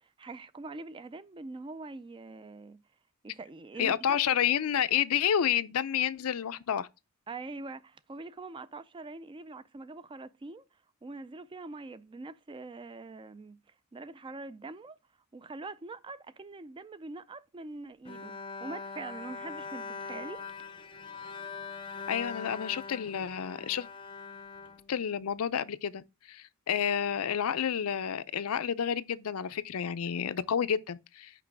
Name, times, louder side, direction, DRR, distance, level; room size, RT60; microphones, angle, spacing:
voice 1, 0.0-2.8 3.2-4.2 7.3-10.6 11.0-13.6 13.9-15.0 15.3-20.4, right 3 dB, 20° right, 0.3 m, -43 dB
voice 2, 3.8-6.9 22.1-23.9 24.9-31.3, left 8 dB, 70° left, 0.5 m, -30 dB
Bowed string instrument, 18.1-25.4, left 5 dB, 25° left, 0.6 m, -42 dB
5.9 x 4.7 x 3.4 m
head